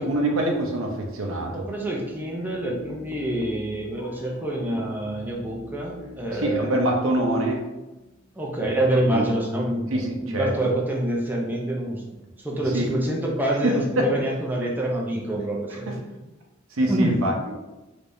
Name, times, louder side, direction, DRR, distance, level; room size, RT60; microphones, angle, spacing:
voice 1, 0.0-1.7 6.3-7.6 9.1-9.3 9.9-10.5 12.7-12.9 13.6-14.1 15.7-16.0 16.7-17.3, right 1 dB, 75° right, 1 dB, 0.7 m, -24 dB
sound 1, 1.3-8.5, left 2 dB, 65° left, 0.7 m, -44 dB
voice 2, 1.5-6.8 8.4-12.0 12.4-15.9 16.8-17.2, right 1 dB, 10° right, -2 dB, 0.5 m, -26 dB
3.4 x 3.3 x 2.6 m, 1.0 s
head